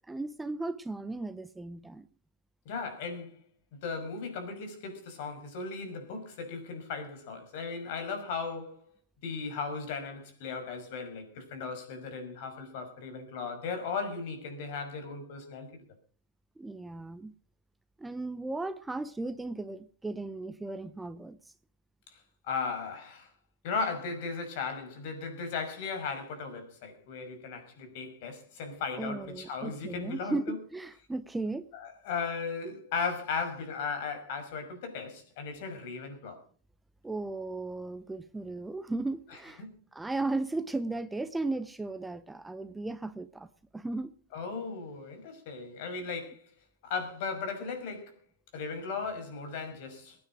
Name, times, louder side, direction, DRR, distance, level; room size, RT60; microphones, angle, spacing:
voice 1, 0.1-2.1 16.6-17.3 18.0-21.5 29.0-31.7 37.0-39.6 39.9-43.5 43.7-44.1, right 2 dB, 10° right, 0.8 m, -36 dB
voice 2, 2.7-3.4 3.7-8.9 9.2-15.8 22.1-22.2 22.4-23.3 23.6-30.6 31.7-36.4 39.6-39.7 44.3-46.5 46.8-48.1 48.5-50.2, left 5 dB, 60° left, 5.7 m, -37 dB
22.0 x 9.7 x 5.0 m
hypercardioid pair, 105°, 0 cm